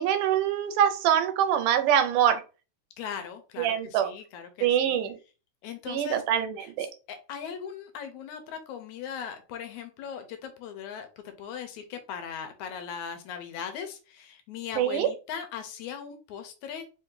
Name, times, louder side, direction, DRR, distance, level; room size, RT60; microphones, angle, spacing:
voice 1, 0.0-2.4 3.6-4.1 4.6-5.2 5.9-6.9 14.8-15.1, right 9 dB, 90° right, 9 dB, 2.3 m, -24 dB
voice 2, 3.0-5.0 5.6-6.2 6.6-17.0, left 7 dB, 75° left, 7 dB, 2.1 m, -39 dB
5.0 x 2.7 x 3.7 m, 0.33 s
omnidirectional pair, 3.5 m